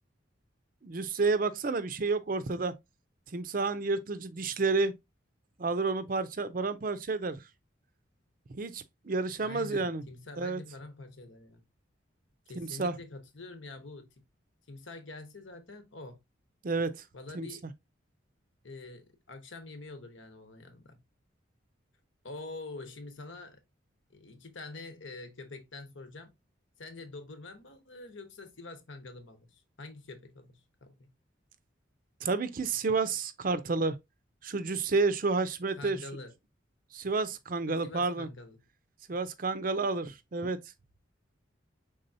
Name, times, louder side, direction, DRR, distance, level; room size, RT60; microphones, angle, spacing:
voice 1, 0.8-2.7 3.3-4.9 5.6-7.4 8.5-10.0 10.4-10.6 12.6-13.0 16.6-17.0 17.3-17.5 32.2-34.0 34.4-36.0 36.9-38.3 39.1-40.6, right 3 dB, 45° right, 0.5 m, -30 dB
voice 2, 9.4-11.6 12.5-14.1 14.7-16.2 17.1-17.7 18.6-21.0 22.2-23.6 24.1-26.3 26.8-31.1 35.8-36.3 37.8-38.6, left 3 dB, 75° left, 1.1 m, -46 dB
5.3 x 3.7 x 2.6 m
head